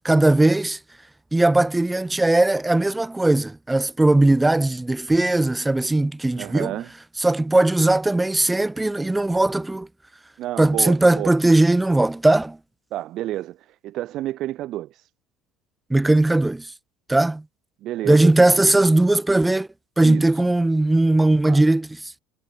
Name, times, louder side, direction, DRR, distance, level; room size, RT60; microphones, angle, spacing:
voice 1, 0.0-0.8 1.3-6.7 7.2-9.9 10.6-12.6 15.9-16.7 17.1-17.4 18.0-19.7 20.0-21.9, right 2 dB, 5° right, 0.5 m, -18 dB
voice 2, 6.3-6.9 10.4-11.4 12.9-15.1 17.8-18.3 20.0-20.2 21.5-21.6, right 14 dB, 40° right, 2.1 m, -30 dB
cardioid pair, 175°, 0 cm